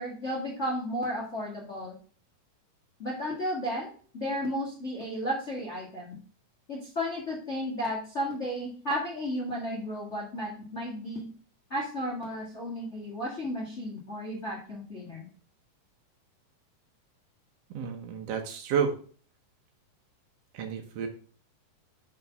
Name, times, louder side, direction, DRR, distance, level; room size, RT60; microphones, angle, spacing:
voice 1, 0.0-1.9 3.0-6.2 6.7-11.3 11.7-15.3, equal, 75° left, -3 dB, 0.6 m, -33 dB
voice 2, 17.7-18.9 20.5-21.1, right 7 dB, 80° right, 3 dB, 1.4 m, -30 dB
5.1 x 4.6 x 5.4 m, 0.43 s
omnidirectional pair, 3.9 m